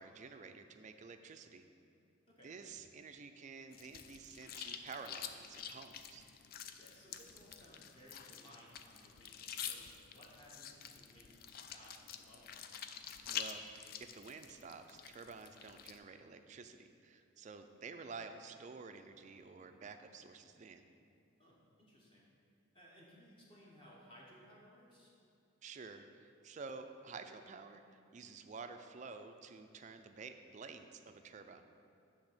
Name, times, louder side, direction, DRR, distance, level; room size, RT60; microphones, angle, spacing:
voice 1, 0.0-1.7 2.4-6.2 13.3-20.8 25.6-31.6, right 4 dB, 35° right, 7 dB, 0.4 m, -51 dB
sound 1, 3.7-16.0, left 8 dB, 45° left, 0.3 m, -48 dB
voice 2, 6.8-12.6 21.4-22.3 22.7-25.1, equal, 25° left, -5 dB, 1.0 m, -61 dB
8.2 x 3.5 x 6.6 m, 2.5 s
head